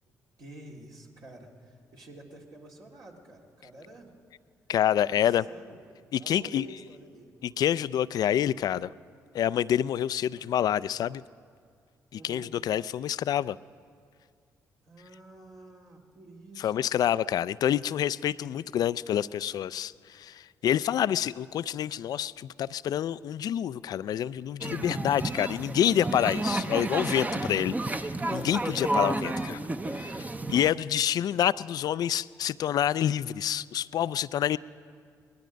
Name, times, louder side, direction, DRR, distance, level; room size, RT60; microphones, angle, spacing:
voice 1, 0.4-4.1 5.1-5.8 6.2-7.3 10.3-10.4 12.1-12.5 14.8-17.1, right 2 dB, 60° right, -2 dB, 2.3 m, -49 dB
voice 2, 4.7-5.5 6.1-6.7 7.4-8.9 9.3-11.2 12.1-13.6 16.6-29.6 29.9-30.2 30.5-34.6, left 10 dB, 60° left, 18 dB, 0.3 m, -27 dB
sound 1, 24.6-30.7, right 2 dB, 20° right, 0.8 m, -31 dB
20.0 x 12.0 x 5.2 m, 2.1 s
hypercardioid pair, 45°, 8 cm